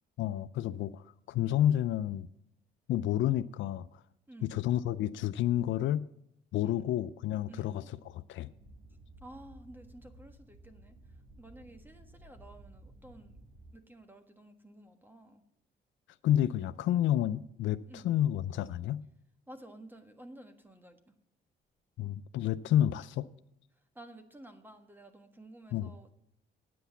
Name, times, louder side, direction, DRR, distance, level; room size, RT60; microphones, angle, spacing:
voice 1, 0.2-2.3 2.9-4.0 4.4-6.1 6.5-7.8 8.3-8.5 16.2-19.0 22.0-23.3 25.7-25.9, left 12 dB, 70° left, 0.4 m, -30 dB
voice 2, 7.5-7.8 9.2-13.4 13.7-15.4 17.9-18.0 19.5-21.1 23.7-26.1, right 1 dB, 10° right, 1.4 m, -52 dB
sound 1, 8.5-13.7, right 1 dB, 45° right, 1.9 m, -55 dB
9.3 x 7.9 x 7.0 m
cardioid pair, 90°, 20 cm